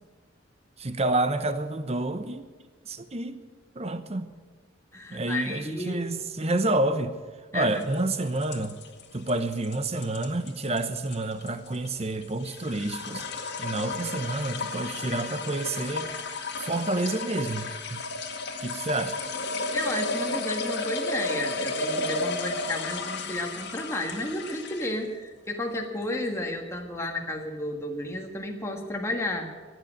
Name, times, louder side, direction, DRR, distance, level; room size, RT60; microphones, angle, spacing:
voice 1, 0.8-2.5 2.8-3.4 3.7-4.3 5.1-7.2 7.5-8.8 9.1-13.3 13.6-16.1 16.6-18.0 18.6-19.2, right 2 dB, 35° right, 11 dB, 0.9 m, -29 dB
voice 2, 4.9-6.1 7.5-7.8 19.7-29.5, left 1 dB, 15° left, 1 dB, 1.6 m, -32 dB
sound 1, 7.8-25.0, left 3 dB, 60° left, 1.8 m, -33 dB
15.0 x 9.5 x 8.8 m, 1.4 s
head